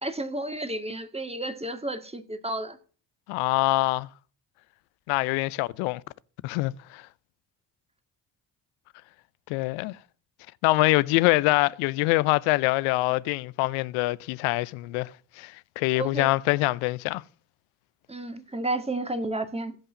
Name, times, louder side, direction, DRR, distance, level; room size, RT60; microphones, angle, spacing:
voice 1, 0.0-2.8 16.0-16.3 18.1-19.8, right 2 dB, 10° right, 1.9 m, -32 dB
voice 2, 3.3-4.1 5.1-6.0 6.4-7.0 9.5-10.0 10.6-15.1 15.4-17.2, left 21 dB, 80° left, 0.6 m, -24 dB
16.0 x 5.5 x 6.3 m
hypercardioid pair, 45°, 48 cm